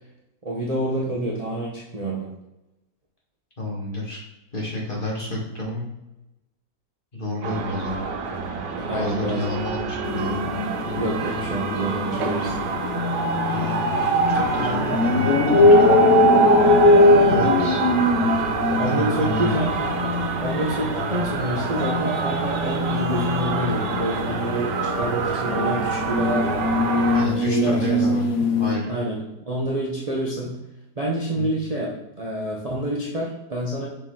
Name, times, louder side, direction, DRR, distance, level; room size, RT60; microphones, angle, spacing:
voice 1, 0.4-2.3 8.7-9.4 10.9-12.5 18.7-19.7 20.4-28.0 28.9-29.2 29.5-30.5 30.9-31.9 32.2-33.9, right 1 dB, 30° right, -4 dB, 0.9 m, -27 dB
voice 2, 3.6-4.2 4.5-5.8 7.1-8.0 8.9-10.4 13.5-13.9 14.4-15.9 17.3-17.8 18.8-19.9 27.1-28.9 31.3-31.6, left 1 dB, 30° left, -3 dB, 1.8 m, -30 dB
sound 1, 7.4-27.3, right 5 dB, 90° right, 1.4 m, -25 dB
sound 2, 10.0-28.8, left 3 dB, 60° left, 1.1 m, -22 dB
6.6 x 4.5 x 3.8 m, 0.93 s
omnidirectional pair, 1.8 m